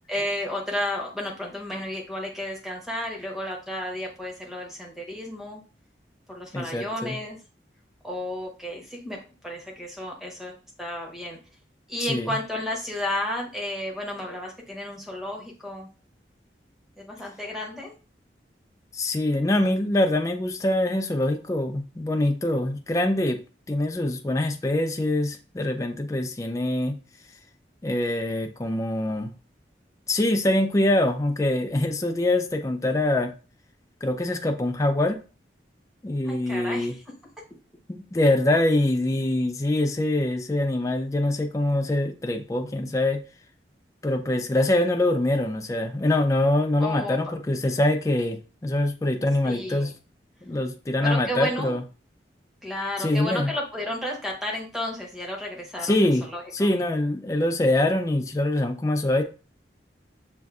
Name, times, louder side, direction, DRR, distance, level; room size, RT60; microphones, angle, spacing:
voice 1, 0.1-5.6 6.3-7.4 8.0-10.5 10.8-11.4 11.9-15.9 17.0-17.9 36.2-37.0 46.8-47.2 49.4-49.9 51.0-51.8 52.6-56.7, left 1 dB, ahead, -1 dB, 0.9 m, -32 dB
voice 2, 6.5-7.2 12.1-12.3 18.9-23.4 23.7-27.0 27.8-29.3 30.1-33.3 34.0-35.2 36.0-36.9 37.9-43.2 44.0-49.9 50.5-51.8 53.0-53.5 55.8-56.2 56.5-59.2, left 1 dB, 20° left, 5 dB, 0.3 m, -24 dB
6.3 x 2.5 x 2.4 m, 0.34 s
head